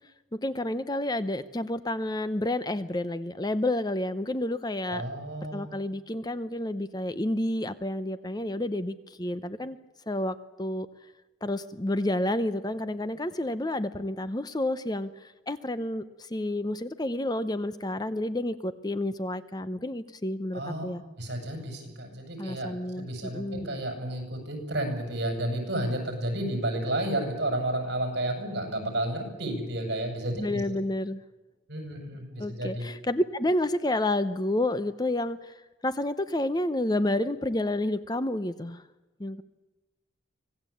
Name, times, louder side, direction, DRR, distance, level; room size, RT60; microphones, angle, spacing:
voice 1, 0.3-5.0 5.5-9.8 10.1-10.9 11.4-21.0 22.4-23.7 30.4-31.2 32.4-35.6 35.8-38.8 39.2-39.4, left 1 dB, 20° left, 13 dB, 0.7 m, -30 dB
voice 2, 4.9-5.7 20.5-20.9 21.2-30.6 31.7-32.9, right 1 dB, 55° right, 4 dB, 7.2 m, -31 dB
25.0 x 18.0 x 8.5 m, 1.2 s
head